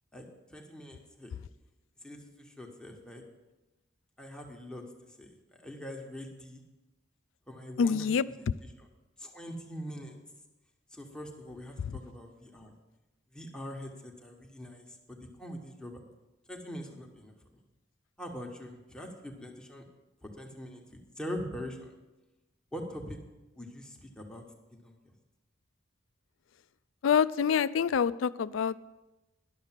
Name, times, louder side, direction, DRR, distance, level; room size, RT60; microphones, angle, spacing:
voice 1, 0.5-1.3 2.0-3.2 4.2-4.8 5.2-6.6 7.5-8.1 8.8-8.9 9.2-10.2 10.9-12.7 13.3-16.0 16.5-17.3 18.2-19.8 20.2-21.9 22.7-23.2 23.6-24.4 24.7-24.9, equal, 5° left, 1 dB, 1.2 m, -43 dB
voice 2, 7.8-8.3 11.8-12.0 27.0-28.8, left 7 dB, 75° left, 17 dB, 0.4 m, -26 dB
11.0 x 6.6 x 7.4 m, 1.0 s
head